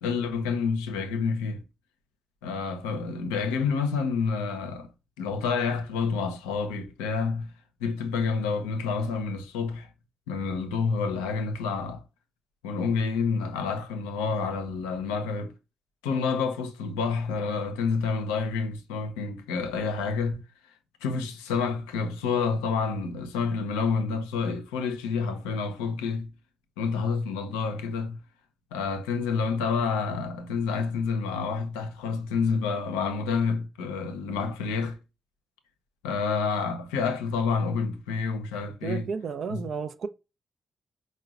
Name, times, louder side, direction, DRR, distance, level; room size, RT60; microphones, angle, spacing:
voice 1, 0.0-1.6 2.4-4.9 5.2-7.5 7.8-9.9 10.3-12.0 12.6-15.5 16.0-20.4 21.0-26.3 26.8-28.2 28.7-35.0 36.0-39.1 39.5-39.6, left 5 dB, 90° left, 0.5 m, -28 dB
voice 2, 38.8-40.1, right 6 dB, 65° right, 0.4 m, -32 dB
4.6 x 2.1 x 2.4 m
hypercardioid pair, 40°, 0 cm